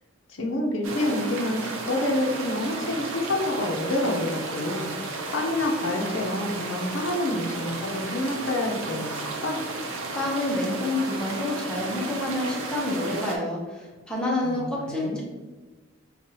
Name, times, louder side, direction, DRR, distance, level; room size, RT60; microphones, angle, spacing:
voice 1, 0.3-4.9 5.3-9.6 14.4-15.2, left 1 dB, 70° left, 0 dB, 0.7 m, -28 dB
sound 1, 0.8-13.4, right 3 dB, 75° right, 0.6 m, -34 dB
voice 2, 10.1-15.2, left 1 dB, 5° left, -4 dB, 0.6 m, -28 dB
5.3 x 2.3 x 2.8 m, 1.3 s
head